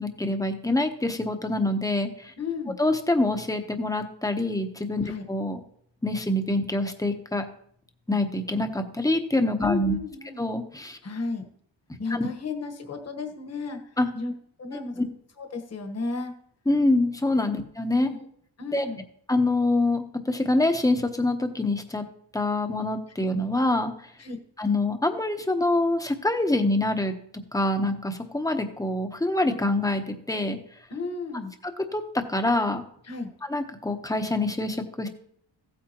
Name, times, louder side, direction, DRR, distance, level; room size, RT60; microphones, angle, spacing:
voice 1, 0.0-2.3 2.8-5.6 6.0-7.5 8.1-10.0 10.4-11.0 12.1-12.3 14.0-14.1 16.7-18.1 18.7-18.9 19.3-22.0 22.3-23.9 24.6-27.2 27.5-30.6 31.6-32.8 33.4-35.1, left 2 dB, 10° left, 6 dB, 1.0 m, -25 dB
voice 2, 2.4-2.8 5.0-5.2 9.6-10.4 11.0-11.5 12.0-13.8 14.1-14.3 14.6-15.0 15.4-16.3 17.4-17.6 18.0-18.2 18.6-19.0 24.2-24.4 30.9-31.5 33.1-33.3, left 3 dB, 35° left, 5 dB, 1.4 m, -33 dB
15.5 x 8.6 x 3.0 m, 0.67 s
wide cardioid pair, 130°, 44 cm